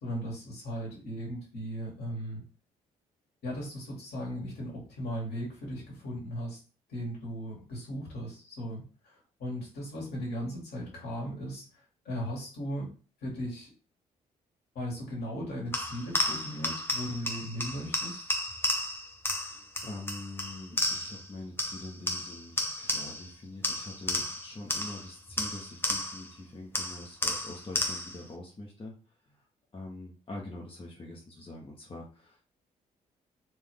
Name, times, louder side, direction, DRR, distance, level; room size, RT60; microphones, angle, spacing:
voice 1, 0.0-2.4 3.4-6.6 6.9-11.6 12.0-12.9 13.2-13.7 14.7-18.2, equal, 60° left, -3 dB, 2.5 m, -37 dB
sound 1, 15.7-21.3 21.6-23.3 23.6-26.3 26.7-28.2, left 1 dB, 10° left, 0.9 m, -33 dB
voice 2, 19.4-28.9 29.3-29.4 29.7-32.4, left 2 dB, 30° left, -2 dB, 1.5 m, -44 dB
4.5 x 3.2 x 3.7 m, 0.36 s
figure-of-eight pair, 45°, 18 cm